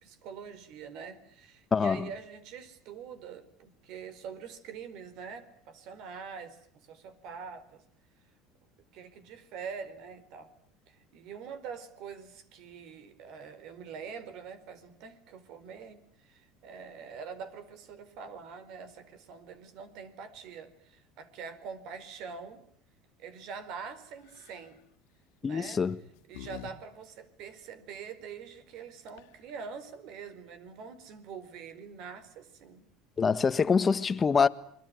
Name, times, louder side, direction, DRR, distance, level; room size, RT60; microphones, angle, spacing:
voice 1, 0.0-6.6 6.9-7.8 8.9-10.5 10.9-22.6 23.2-24.8 25.4-25.8 26.3-32.9, right 6 dB, 60° right, 4.4 m, -44 dB
voice 2, 1.7-2.1 25.4-26.0 33.2-34.5, left 5 dB, 25° left, 1.4 m, -25 dB
sound 1, 24.3-24.7 25.6-26.7 27.0-27.1 28.8-28.9 29.1-29.5, left 12 dB, 80° left, 2.4 m, -47 dB
28.5 x 22.5 x 9.4 m
supercardioid pair, 120°, 0 cm